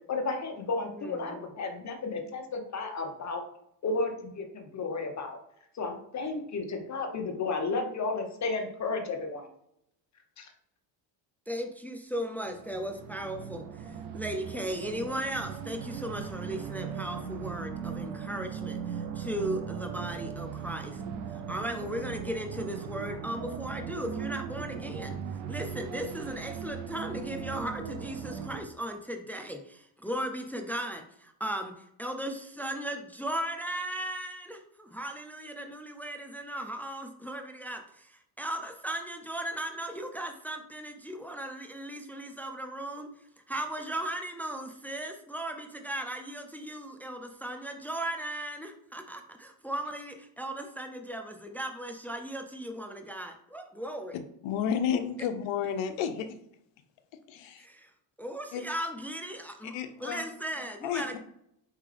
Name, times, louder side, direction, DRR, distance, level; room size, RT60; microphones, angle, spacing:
voice 1, 0.1-3.4 3.8-5.4 5.7-9.5 10.4-10.5, left 3 dB, 35° left, 5 dB, 0.9 m, -33 dB
voice 2, 0.8-1.5 11.5-21.0 21.3-25.2 25.5-43.1 43.5-54.2 57.6-57.9 58.2-59.7 60.0-61.2, right 1 dB, 5° left, 5 dB, 0.3 m, -37 dB
sound 1, 12.5-28.6, right 7 dB, 85° right, 0.7 m, -38 dB
voice 3, 54.4-56.4 57.3-57.7 58.5-58.6 59.6-60.2 60.8-61.2, left 8 dB, 70° left, 9 dB, 0.8 m, -31 dB
4.5 x 3.5 x 3.3 m, 0.75 s
supercardioid pair, 95°, 47 cm